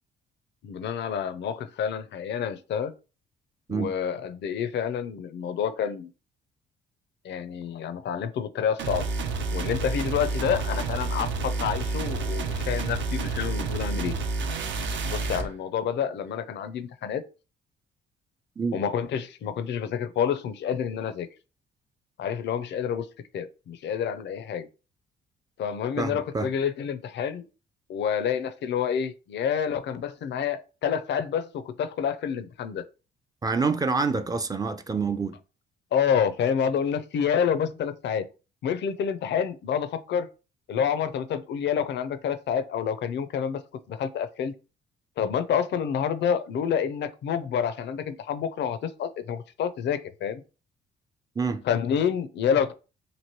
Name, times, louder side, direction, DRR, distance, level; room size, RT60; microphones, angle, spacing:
voice 1, 0.6-2.9 3.7-6.1 7.2-9.1 9.5-14.2 15.1-17.2 18.7-21.3 22.2-23.1 23.3-24.7 25.6-27.5 27.9-32.9 35.9-38.3 38.6-40.3 40.7-43.6 43.9-44.5 45.2-50.4 51.7-52.7, left 8 dB, 65° left, 0.5 m, -28 dB
sound 1, 8.8-15.5, right 3 dB, 70° right, 0.6 m, -29 dB
voice 2, 26.0-26.5 33.4-35.4 51.4-51.6, right 4 dB, 20° right, 0.4 m, -27 dB
3.0 x 2.6 x 2.9 m
cardioid pair, 90°, 20 cm